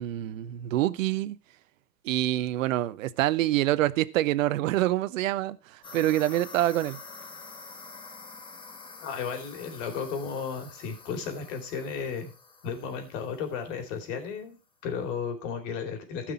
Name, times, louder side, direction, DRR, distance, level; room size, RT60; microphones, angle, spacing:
voice 1, 0.0-1.4 2.0-7.0, right 14 dB, 55° right, 0.9 m, -26 dB
sound 1, 5.8-14.0, left 4 dB, 10° left, 1.2 m, -47 dB
voice 2, 9.0-12.3 12.6-14.6 14.8-16.3, left 6 dB, 50° left, 3.9 m, -34 dB
15.5 x 6.1 x 4.4 m
hypercardioid pair, 120°, 47 cm